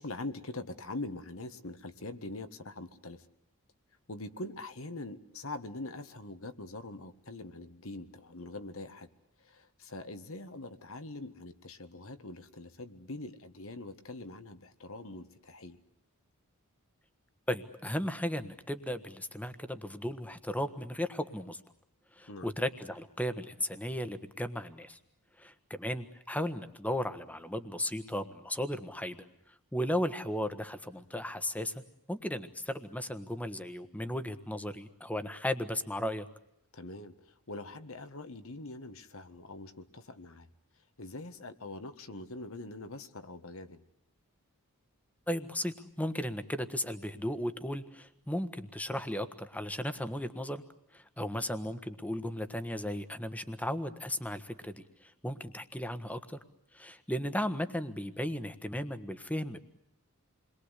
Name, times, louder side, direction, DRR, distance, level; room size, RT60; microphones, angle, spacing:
voice 1, 0.0-3.3 4.1-9.1 9.4-15.8 22.3-22.5 36.7-40.5 41.0-43.8 51.3-51.4, left 2 dB, 65° left, 9 dB, 1.7 m, -43 dB
voice 2, 17.5-21.6 22.1-25.0 25.4-29.2 29.7-31.8 32.1-36.3 45.3-50.6 50.9-56.4 56.7-59.6, left 1 dB, 5° left, 10 dB, 1.4 m, -35 dB
29.0 x 22.0 x 8.2 m, 0.74 s
head